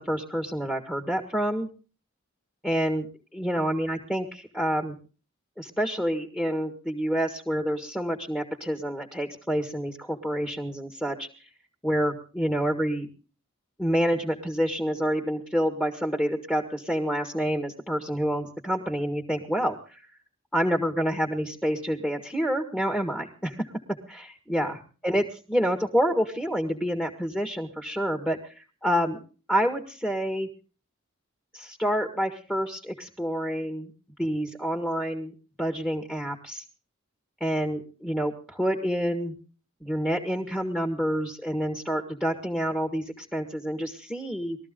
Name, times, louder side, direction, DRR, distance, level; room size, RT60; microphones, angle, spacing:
voice 1, 0.0-1.7 2.6-3.1 3.3-5.0 5.6-11.3 11.8-13.1 13.8-20.0 20.5-23.7 24.1-24.8 25.0-29.2 29.5-30.5 31.5-33.9 34.2-36.6 37.4-39.3 39.8-44.6, equal, 5° left, 3 dB, 1.7 m, -28 dB
21.0 x 14.0 x 3.8 m, 0.36 s
head